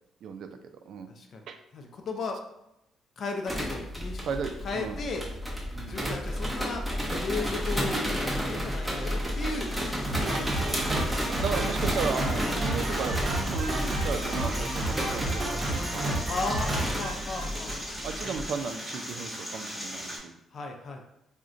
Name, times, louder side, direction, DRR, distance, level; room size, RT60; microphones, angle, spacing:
voice 1, 1.1-1.4 1.7-2.4 3.2-4.2 4.6-5.3 5.9-6.9 7.2-9.7 10.1-10.5 16.3-17.7 20.5-21.0, left 3 dB, 55° left, 3 dB, 0.4 m, -35 dB
sound 1, 3.5-18.4, equal, 5° right, 0.8 m, -32 dB
voice 2, 4.2-5.0 5.7-6.0 10.3-10.8 11.3-16.1 16.5-16.6 17.1-17.2 18.0-20.3, right 5 dB, 70° right, 7 dB, 0.3 m, -35 dB
sound 2, 8.6-20.2, equal, 10° left, 1.1 m, -40 dB
Drum kit, 10.0-17.8, right 1 dB, 40° right, 0.8 m, -31 dB
2.4 x 2.2 x 3.7 m, 0.85 s
cardioid pair, 90°, 0 cm